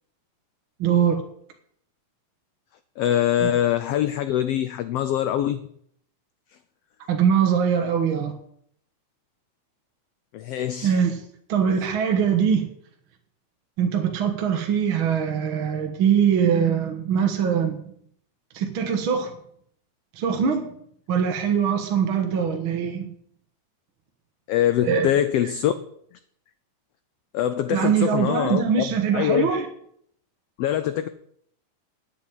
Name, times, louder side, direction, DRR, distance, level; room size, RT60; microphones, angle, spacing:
voice 1, 0.8-1.2 3.4-3.5 7.1-8.3 10.8-11.2 11.5-12.7 13.8-17.8 18.5-19.3 20.2-20.7 21.1-23.1 24.8-25.1 27.7-29.7, right 7 dB, 50° right, 4 dB, 1.7 m, -22 dB
voice 2, 3.0-5.6 10.3-10.9 24.5-25.7 27.3-28.9 29.1-29.5 30.6-31.1, left 11 dB, 90° left, 12 dB, 1.3 m, -23 dB
9.9 x 7.9 x 9.2 m, 0.67 s
omnidirectional pair, 3.5 m